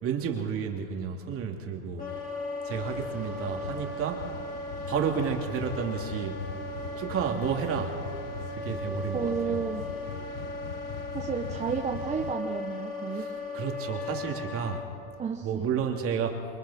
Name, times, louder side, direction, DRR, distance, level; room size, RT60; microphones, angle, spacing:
voice 1, 0.0-2.1 2.6-4.3 4.9-6.4 6.9-8.0 8.5-9.7 13.1-13.3 13.5-14.9 15.4-16.5, right 7 dB, 35° right, 2 dB, 2.8 m, -31 dB
Wind instrument woodwind instrument, 2.0-14.8, left 2 dB, 20° left, 4.4 m, -37 dB
sound 1, 2.7-12.3, left 11 dB, 75° left, 1.1 m, -41 dB
voice 2, 9.1-9.8 11.1-13.3 15.2-15.7, right 6 dB, 15° right, 1 dB, 1.1 m, -32 dB
28.0 x 23.0 x 4.3 m, 2.5 s
supercardioid pair, 135°, 41 cm